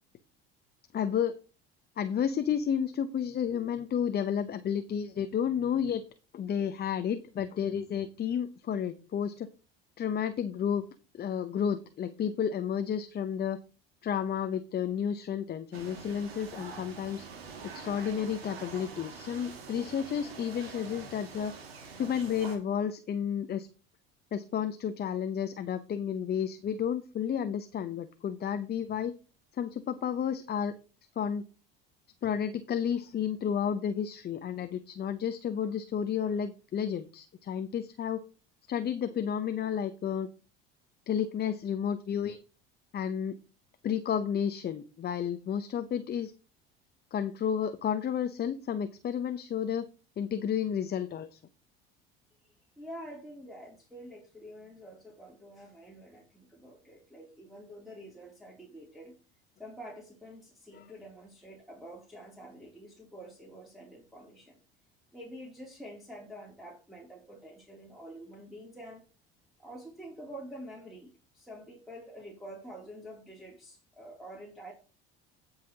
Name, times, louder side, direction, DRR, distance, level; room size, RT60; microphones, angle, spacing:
voice 1, 0.9-1.4 2.0-6.0 6.3-9.5 10.0-10.8 11.2-13.6 14.0-17.2 17.7-21.5 22.0-23.7 24.3-29.1 29.6-30.7 31.2-31.4 32.2-38.2 38.7-40.3 41.1-42.4 42.9-43.4 43.8-46.3 47.1-49.9 50.2-51.4 60.7-60.9, left 8 dB, 35° left, 0.7 m, -31 dB
sound 1, 15.7-22.6, right 5 dB, 90° right, 2.2 m, -45 dB
voice 2, 52.8-59.1 59.6-64.6 65.1-69.0 69.6-74.7, equal, ahead, 2.8 m, -47 dB
16.5 x 5.6 x 2.8 m
hypercardioid pair, 75°, 30 cm